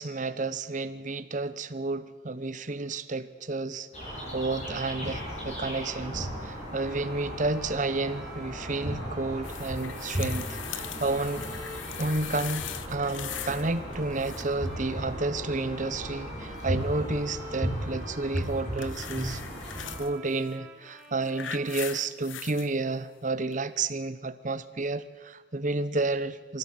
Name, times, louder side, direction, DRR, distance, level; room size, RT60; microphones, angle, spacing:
voice 1, 0.0-11.4 12.0-19.4 19.8-26.6, right 3 dB, 40° right, 13 dB, 1.0 m, -31 dB
sound 1, 3.9-20.0, equal, 35° left, 7.4 m, -36 dB
Bowed string instrument, 6.8-22.6, equal, 5° right, 3.0 m, -49 dB
sound 2, 9.4-13.7 13.9-14.7 18.4-20.1 20.9-22.7 23.5-23.6, left 11 dB, 85° left, 0.9 m, -40 dB
24.0 x 16.0 x 7.7 m, 1.3 s
head